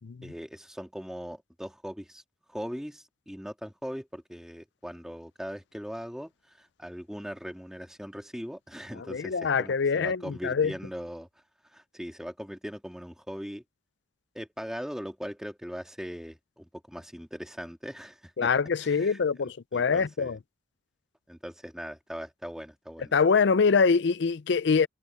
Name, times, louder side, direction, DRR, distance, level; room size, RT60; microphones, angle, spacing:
voice 1, 0.2-2.2 2.5-11.3 11.7-13.6 14.3-18.5 18.8-20.4 21.3-23.1, equal, 5° right, 2.3 m, -40 dB
voice 2, 9.1-10.7 18.4-20.4 23.1-24.9, left 5 dB, 60° left, 0.5 m, -24 dB
head